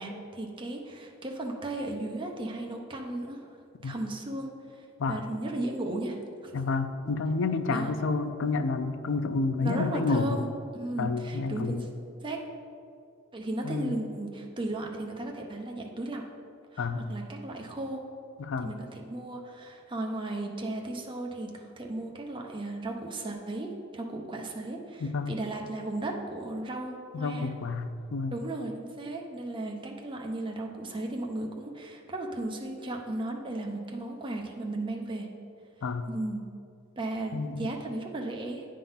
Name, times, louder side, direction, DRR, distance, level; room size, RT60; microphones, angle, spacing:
voice 1, 0.0-3.5 3.8-6.5 7.7-7.9 9.6-10.5 10.7-11.9 12.2-12.4 13.3-16.2 16.7-18.0 18.6-27.5 28.3-35.3 36.1-36.5 37.0-38.6, right 2 dB, 25° right, 1 dB, 0.7 m, -35 dB
voice 2, 6.5-10.4 11.0-11.8 13.6-13.9 16.8-17.0 18.4-18.7 25.0-25.3 27.1-28.3 35.8-36.1 37.3-37.7, left 3 dB, 60° left, 9 dB, 0.5 m, -29 dB
9.0 x 3.7 x 5.6 m, 2.3 s
head